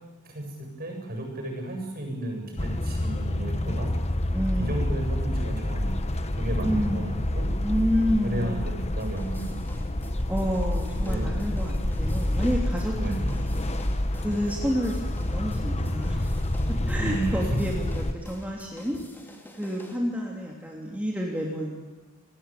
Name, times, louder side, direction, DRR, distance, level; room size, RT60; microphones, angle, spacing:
voice 1, 0.2-3.9 4.6-7.5 8.2-9.6 10.9-11.5 12.9-13.4 16.9-17.4, right 1 dB, 45° right, 3 dB, 7.9 m, -33 dB
sound 1, 2.6-18.1, left 1 dB, 30° left, 1.3 m, -28 dB
voice 2, 4.3-5.0 6.6-7.2 7.6-8.8 10.3-13.5 14.2-16.4 16.9-19.0 19.6-21.7, equal, 5° right, -2 dB, 3.1 m, -29 dB
sound 2, 9.0-20.0, equal, 10° left, 2.7 m, -48 dB
28.5 x 19.0 x 9.1 m, 1.2 s
head